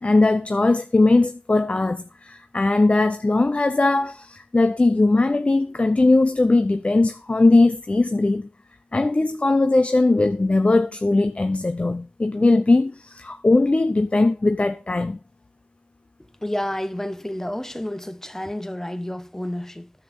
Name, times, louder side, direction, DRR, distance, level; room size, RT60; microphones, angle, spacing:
voice 1, 0.0-8.5 8.9-15.2, left 2 dB, 40° left, 0.7 m, -19 dB
voice 2, 16.4-19.9, left 1 dB, 15° left, 1.1 m, -30 dB
9.9 x 8.1 x 5.4 m
wide cardioid pair, 55°, 3 cm